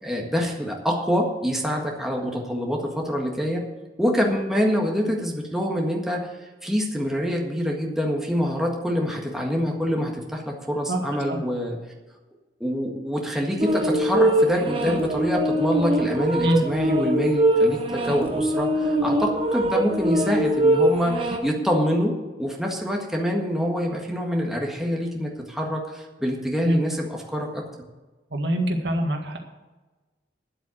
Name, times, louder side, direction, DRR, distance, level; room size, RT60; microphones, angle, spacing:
voice 1, 0.0-3.6 4.0-6.3 6.6-11.8 12.6-22.1 22.4-27.6, equal, ahead, -1 dB, 1.7 m, -25 dB
sound 1, 13.6-21.4, right 1 dB, 30° right, 1.3 m, -22 dB
voice 2, 28.3-29.4, right 1 dB, 75° right, 3 dB, 1.8 m, -24 dB
10.5 x 7.9 x 7.9 m, 1.2 s
head